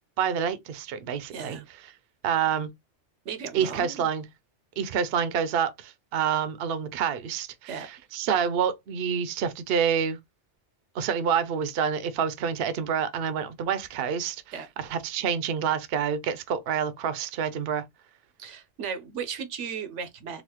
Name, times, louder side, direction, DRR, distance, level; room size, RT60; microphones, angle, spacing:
voice 1, 0.2-1.6 2.2-2.7 3.5-4.2 4.8-10.2 10.9-14.4 14.8-17.8, right 7 dB, 65° right, 0.7 m, -27 dB
voice 2, 1.3-1.7 3.2-4.1 7.7-7.9 14.5-14.7 18.4-20.4, right 7 dB, 80° right, 1.1 m, -36 dB
4.0 x 2.4 x 2.8 m
omnidirectional pair, 1.2 m